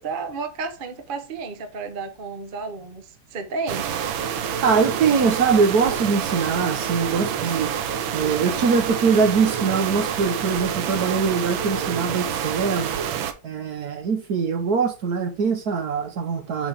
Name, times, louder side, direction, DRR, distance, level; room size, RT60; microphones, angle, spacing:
voice 1, 0.0-3.9, right 4 dB, 40° right, 0.8 m, -32 dB
sound 1, 3.7-13.3, right 8 dB, 85° right, 1.6 m, -27 dB
voice 2, 4.6-7.7 8.1-12.9 13.4-16.7, right 5 dB, 60° right, 1.4 m, -22 dB
6.2 x 6.0 x 3.4 m
omnidirectional pair, 2.1 m